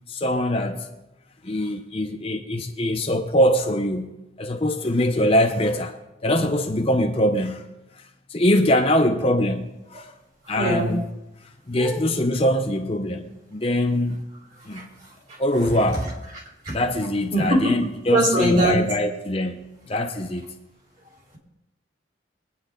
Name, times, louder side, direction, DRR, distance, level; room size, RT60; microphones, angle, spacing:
voice 1, 0.1-0.9 1.4-6.0 6.2-7.7 8.3-10.1 10.5-11.1 11.7-14.3 14.7-14.9 15.4-16.1 16.7-20.5, left 1 dB, 30° left, 0.8 m, -23 dB
voice 2, 10.6-10.9 11.8-12.0 14.7-14.8 16.6-16.8 17.3-17.8 18.1-18.8, right 1 dB, 40° right, 4.2 m, -21 dB
23.0 x 9.4 x 3.9 m
head